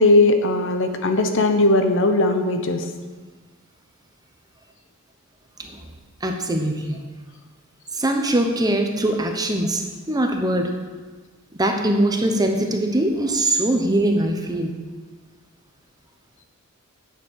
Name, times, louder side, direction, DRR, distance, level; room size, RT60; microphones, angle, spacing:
voice 1, 0.0-2.8, left 2 dB, 60° left, 6 dB, 1.0 m, -18 dB
voice 2, 6.2-7.0 7.9-10.7 11.6-14.7, right 1 dB, 20° right, 4 dB, 0.9 m, -22 dB
9.3 x 7.3 x 6.4 m, 1.4 s
head